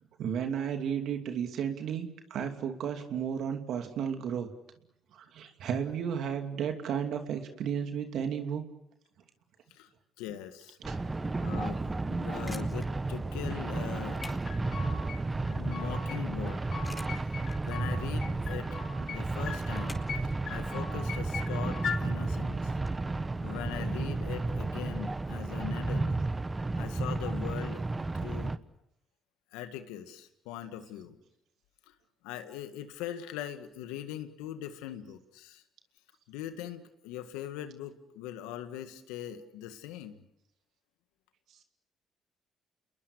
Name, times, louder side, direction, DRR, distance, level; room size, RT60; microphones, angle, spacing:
voice 1, 0.2-4.5 5.1-8.6 10.9-11.0, right 8 dB, 70° right, 5 dB, 2.7 m, -33 dB
voice 2, 10.2-10.8 11.4-14.4 15.4-16.7 17.6-18.8 19.1-22.8 23.4-26.1 26.8-27.8 28.1-28.5 29.5-31.2 31.9-32.0 32.2-35.6 36.3-40.2, left 11 dB, 85° left, 9 dB, 1.9 m, -41 dB
sound 1, 10.8-28.6, right 3 dB, 25° right, 1.2 m, -33 dB
sound 2, 12.3-22.9, left 1 dB, 5° left, 4.4 m, -50 dB
sound 3, 14.2-15.2 15.5-16.2 16.5-17.9 18.2-19.2 19.5-20.2 20.5-22.0, left 7 dB, 60° left, 5.2 m, -39 dB
29.0 x 21.5 x 6.7 m, 0.84 s
supercardioid pair, 60°, 0 cm